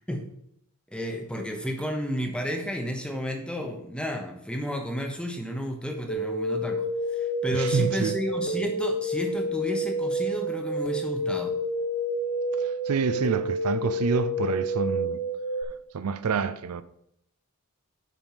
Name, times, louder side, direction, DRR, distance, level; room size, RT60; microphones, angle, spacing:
voice 1, 0.9-6.8 7.1-11.5, equal, 5° left, 1.0 m, -32 dB
sound 1, 6.1-15.6, equal, 40° left, 1.0 m, -29 dB
voice 2, 7.5-8.2 12.6-15.2 15.9-16.8, right 5 dB, 85° right, 0.5 m, -28 dB
7.4 x 5.3 x 5.6 m
head